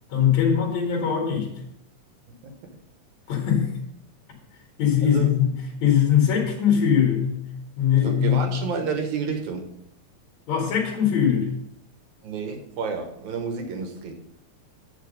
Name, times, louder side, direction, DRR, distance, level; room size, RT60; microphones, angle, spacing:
voice 1, 0.1-1.5 3.3-3.7 4.8-7.5 7.8-8.5 10.5-11.5, left 8 dB, 70° left, 0 dB, 3.0 m, -21 dB
voice 2, 5.0-5.3 8.0-9.6 12.2-14.1, right 5 dB, 80° right, 4 dB, 2.5 m, -30 dB
8.3 x 6.0 x 5.3 m, 0.76 s
omnidirectional pair, 3.3 m